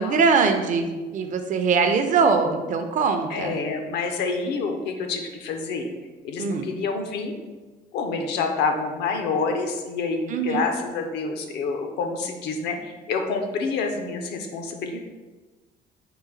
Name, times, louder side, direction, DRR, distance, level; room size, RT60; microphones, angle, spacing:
voice 1, 0.0-3.6 6.4-6.7 10.3-10.6, right 5 dB, 50° right, 7 dB, 0.5 m, -22 dB
voice 2, 3.3-5.9 6.2-7.4 7.9-15.0, left 4 dB, 80° left, 4 dB, 0.6 m, -27 dB
3.9 x 2.4 x 3.9 m, 1.2 s
cardioid pair, 110°, 17 cm